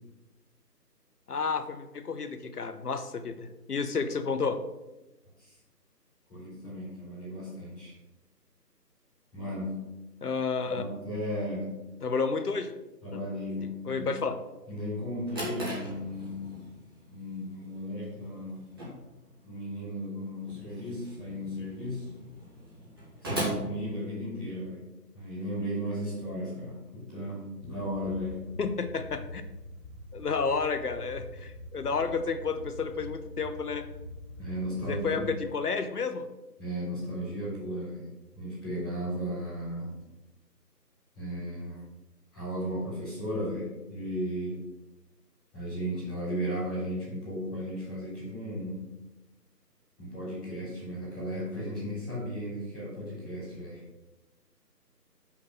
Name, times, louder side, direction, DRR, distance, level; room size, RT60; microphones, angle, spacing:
voice 1, 1.3-4.6 10.2-10.8 12.0-12.7 13.9-14.4 28.6-29.4 30.1-33.9 34.9-36.3, left 5 dB, 65° left, 9 dB, 1.0 m, -31 dB
voice 2, 6.3-7.9 9.3-9.9 10.7-11.8 13.0-14.1 14.7-16.5 17.1-18.7 19.4-22.1 23.3-24.8 25.1-28.5 34.4-35.4 36.6-40.0 41.2-41.8 42.3-44.6 45.5-48.9 50.0-53.8, equal, ahead, -16 dB, 2.0 m, -35 dB
Drawer open or close, 14.9-24.7, right 1 dB, 15° right, 1.6 m, -40 dB
sound 1, 27.6-35.4, left 1 dB, 50° right, 3.0 m, -44 dB
6.3 x 5.7 x 6.2 m, 1.0 s
figure-of-eight pair, 165°, 49 cm